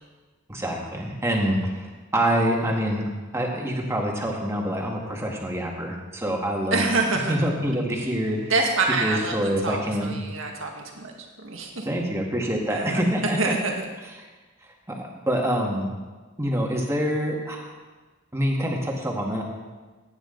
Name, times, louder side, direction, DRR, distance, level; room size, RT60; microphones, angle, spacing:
voice 1, 0.5-1.9 2.1-3.0 3.3-6.9 7.3-8.5 9.0-10.1 11.9-13.5 14.9-15.9 16.4-17.7 18.3-19.4, equal, 15° right, -1 dB, 2.0 m, -26 dB
voice 2, 6.7-7.4 8.5-11.1 11.4-11.9 12.7-13.7, right 3 dB, 75° right, 1 dB, 1.8 m, -26 dB
16.5 x 9.6 x 4.0 m, 1.3 s
head